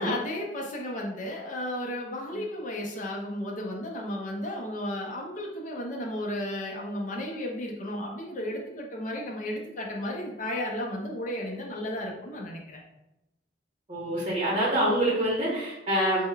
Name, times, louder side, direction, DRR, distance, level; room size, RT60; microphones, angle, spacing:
voice 1, 0.0-12.8, left 1 dB, 45° left, -1 dB, 0.6 m, -34 dB
voice 2, 13.9-16.2, right 1 dB, 30° right, -6 dB, 0.8 m, -26 dB
3.5 x 2.1 x 3.3 m, 0.94 s
head